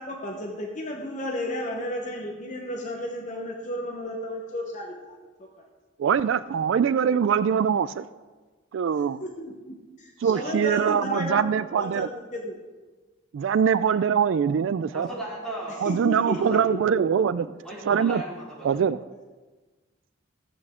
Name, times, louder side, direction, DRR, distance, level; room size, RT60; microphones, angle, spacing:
voice 1, 0.0-5.7 9.2-11.5 11.8-12.6 15.9-17.0, left 1 dB, 40° left, 1 dB, 1.0 m, -33 dB
voice 2, 6.0-8.1 8.7-9.2 10.2-12.1 13.3-15.1 15.8-17.5 17.8-18.2 18.6-19.0, right 7 dB, 75° right, 16 dB, 0.3 m, -23 dB
voice 3, 14.9-16.7 17.6-18.8, right 1 dB, 5° left, -8 dB, 4.2 m, -37 dB
15.0 x 8.4 x 3.7 m, 1.3 s
head